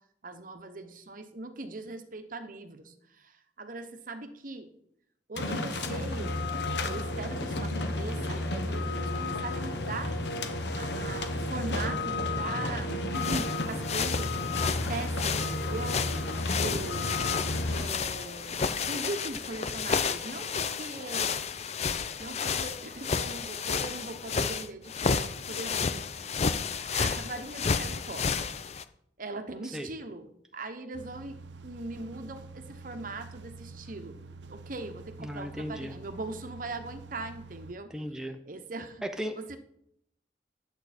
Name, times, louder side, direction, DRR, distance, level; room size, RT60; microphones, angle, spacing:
voice 1, 0.2-3.3 3.6-4.7 5.3-6.4 6.8-10.2 10.7-16.1 16.5-17.1 17.7-21.5 22.2-26.1 26.8-28.5 29.2-37.9 38.5-39.0 39.4-39.6, right 2 dB, 50° right, 8 dB, 1.0 m, -40 dB
sound 1, 5.4-17.9, left 2 dB, 75° left, 1.1 m, -32 dB
sound 2, 13.1-28.8, left 5 dB, 35° left, 0.5 m, -31 dB
sound 3, 30.9-37.7, right 3 dB, 85° right, 0.7 m, -47 dB
voice 2, 35.2-35.9 37.9-38.4 39.0-39.6, equal, 5° right, 3 dB, 0.7 m, -36 dB
11.0 x 8.1 x 4.3 m, 0.72 s
head